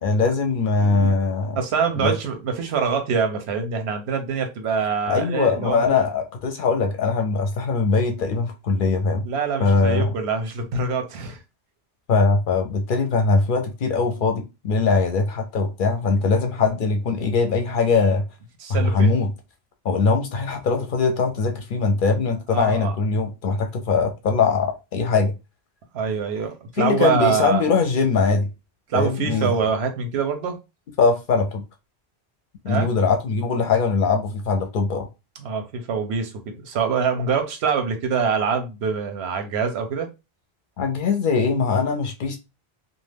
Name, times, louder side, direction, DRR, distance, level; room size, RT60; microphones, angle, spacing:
voice 1, 0.0-1.6 2.0-2.2 5.1-9.3 9.6-10.1 12.1-18.2 18.7-19.3 19.8-25.3 26.8-28.5 28.9-29.5 31.0-31.6 32.6-35.1 40.8-42.4, left 4 dB, 60° left, 0.6 m, -21 dB
voice 2, 0.8-1.1 1.6-5.9 9.2-11.4 18.6-19.1 22.5-22.9 25.9-27.6 28.9-30.6 32.7-32.9 35.4-40.1, right 6 dB, 90° right, 0.9 m, -25 dB
2.4 x 2.2 x 3.3 m
omnidirectional pair, 1.1 m